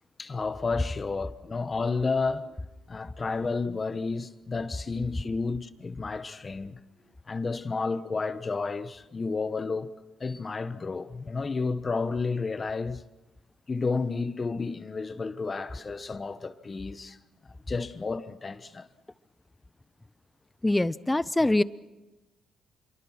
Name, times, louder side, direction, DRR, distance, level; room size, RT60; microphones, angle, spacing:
voice 1, 0.2-2.5 2.9-6.8 7.3-9.9 10.2-13.0 13.7-17.2 17.7-18.9, left 4 dB, 30° left, 1.2 m, -31 dB
voice 2, 20.6-21.6, left 1 dB, 10° left, 0.7 m, -23 dB
27.0 x 23.0 x 5.9 m
cardioid pair, 90°, 0 cm